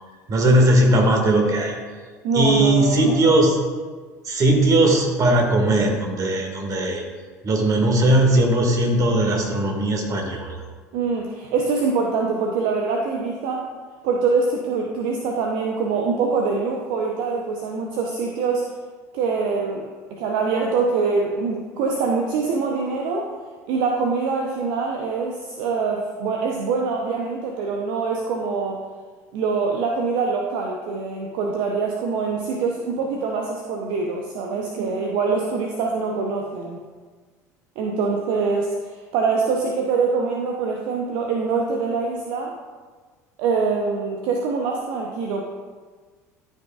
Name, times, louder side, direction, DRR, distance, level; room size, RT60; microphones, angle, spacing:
voice 1, 0.3-1.7 2.3-3.6 4.2-7.0 7.4-10.6, right 1 dB, 40° right, 1 dB, 1.9 m, -18 dB
voice 2, 2.2-3.2 10.9-13.7 14.0-18.7 19.1-23.3 23.7-28.8 29.3-36.8 37.8-42.5 43.4-45.4, right 4 dB, 60° right, 1 dB, 0.8 m, -24 dB
13.0 x 5.5 x 2.4 m, 1.5 s
hypercardioid pair, 70°, 9 cm